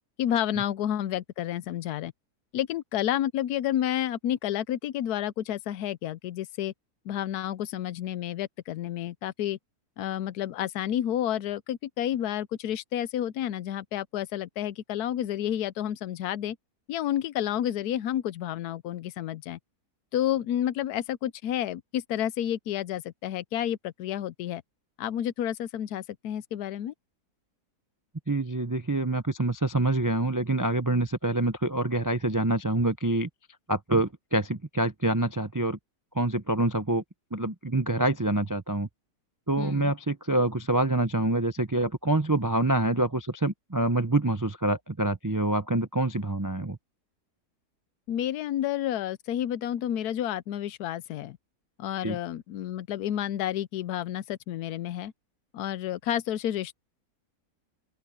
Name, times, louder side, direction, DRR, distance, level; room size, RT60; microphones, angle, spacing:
voice 1, 0.2-2.1 2.5-6.7 7.0-9.6 10.0-16.6 16.9-19.6 20.1-24.6 25.0-26.9 39.6-39.9 48.1-51.4 51.8-55.1 55.5-56.8, left 11 dB, 75° left, 1.2 m, -30 dB
voice 2, 28.3-33.3 33.7-35.8 36.1-37.0 37.3-38.9 39.5-46.8 52.0-52.2, right 2 dB, 20° right, 0.5 m, -26 dB
open air
omnidirectional pair, 1.7 m